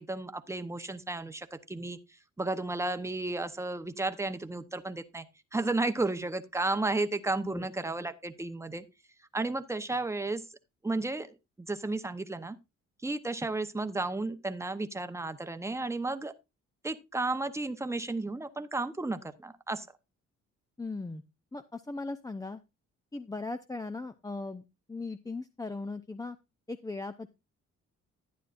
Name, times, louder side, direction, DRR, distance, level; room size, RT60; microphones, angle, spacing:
voice 1, 0.0-2.0 2.4-5.3 5.5-8.8 9.3-10.4 10.8-12.6 13.0-16.3 16.8-19.9, right 2 dB, 10° right, 0.9 m, -33 dB
voice 2, 20.8-21.2 21.5-22.6 23.1-26.4 26.7-27.3, left 3 dB, 10° left, 0.6 m, -38 dB
12.0 x 9.7 x 2.5 m
cardioid pair, 90°, 30 cm